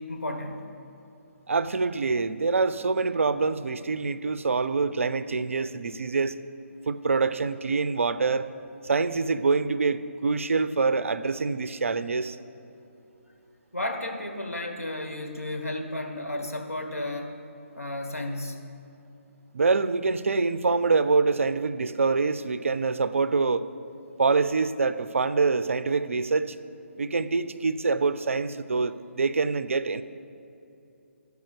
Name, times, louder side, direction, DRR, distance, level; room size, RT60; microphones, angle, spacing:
voice 1, 0.1-0.6 13.7-17.4 17.7-18.6, left 1 dB, 85° left, 2 dB, 1.4 m, -33 dB
voice 2, 1.5-6.3 6.9-8.5 8.8-12.4 19.5-23.7 24.2-26.6 27.0-30.0, right 4 dB, 65° right, 14 dB, 0.4 m, -25 dB
11.5 x 4.7 x 6.7 m, 2.8 s
figure-of-eight pair, 145°, 8 cm